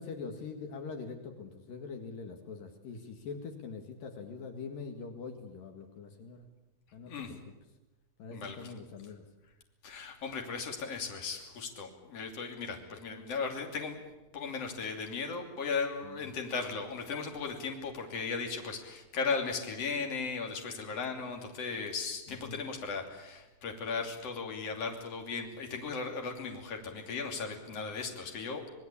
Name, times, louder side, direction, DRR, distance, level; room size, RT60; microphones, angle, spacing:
voice 1, 0.0-6.4 6.9-7.4 8.2-9.2 16.0-16.2 22.3-22.7, left 5 dB, 75° left, 5 dB, 3.5 m, -43 dB
voice 2, 8.3-8.7 9.8-14.0 14.3-28.7, left 5 dB, 45° left, 2 dB, 3.8 m, -37 dB
27.0 x 20.0 x 8.5 m, 1.1 s
omnidirectional pair, 4.0 m